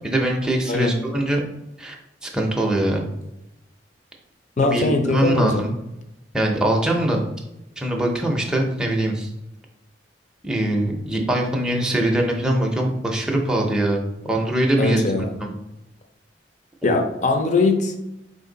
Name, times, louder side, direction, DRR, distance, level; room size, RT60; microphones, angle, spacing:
voice 1, 0.0-1.4 1.8-2.0 2.2-3.0 4.6-5.7 6.3-7.2 7.8-9.3 10.4-15.0 15.4-15.5, right 1 dB, 5° right, 0 dB, 0.5 m, -22 dB
voice 2, 4.6-5.6 14.8-15.3 16.8-17.9, left 3 dB, 40° left, 4 dB, 0.5 m, -21 dB
4.3 x 2.6 x 3.8 m, 0.90 s
head